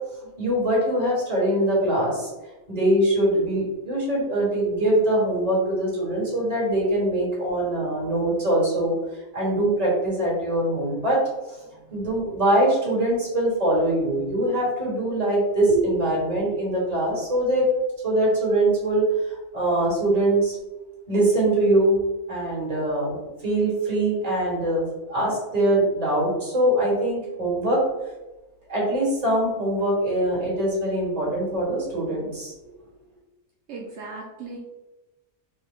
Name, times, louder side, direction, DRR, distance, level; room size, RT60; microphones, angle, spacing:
voice 1, 0.4-2.3 2.7-8.9 9.3-11.2 11.5-11.6 11.9-17.7 18.0-20.6 21.1-22.0 22.3-23.2 23.4-27.8 28.7-32.5, right 1 dB, 30° right, -5 dB, 1.3 m, -23 dB
voice 2, 33.7-34.6, right 3 dB, 65° right, -2 dB, 0.8 m, -37 dB
3.2 x 2.2 x 3.4 m, 1.1 s
omnidirectional pair, 1.3 m